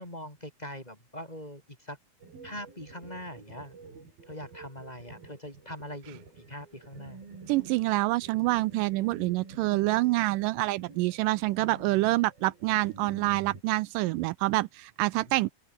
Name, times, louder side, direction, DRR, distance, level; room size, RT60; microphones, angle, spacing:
voice 1, 0.0-2.0 2.4-3.8 4.3-7.2 11.6-12.0 15.3-15.5, left 1 dB, 10° left, 4.2 m, -42 dB
sound 1, 2.2-13.6, right 4 dB, 70° right, 8.2 m, -48 dB
voice 2, 7.5-15.5, right 19 dB, 90° right, 1.9 m, -27 dB
open air
omnidirectional pair, 4.4 m